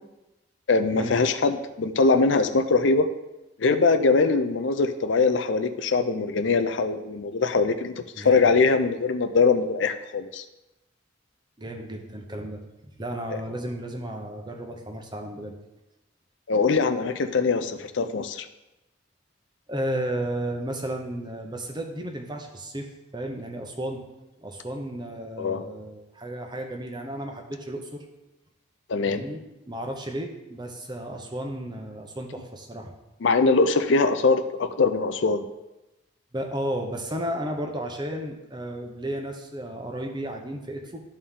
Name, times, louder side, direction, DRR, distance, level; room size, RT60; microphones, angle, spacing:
voice 1, 0.7-3.1 3.6-10.4 16.5-18.5 25.4-25.6 28.9-29.2 33.2-35.5, left 4 dB, 65° left, 9 dB, 0.5 m, -22 dB
voice 2, 8.1-8.5 11.6-15.5 19.7-24.0 24.4-28.0 29.1-29.4 29.7-32.9 36.3-41.0, right 1 dB, 20° right, 2 dB, 1.0 m, -33 dB
12.5 x 4.3 x 3.7 m, 0.97 s
head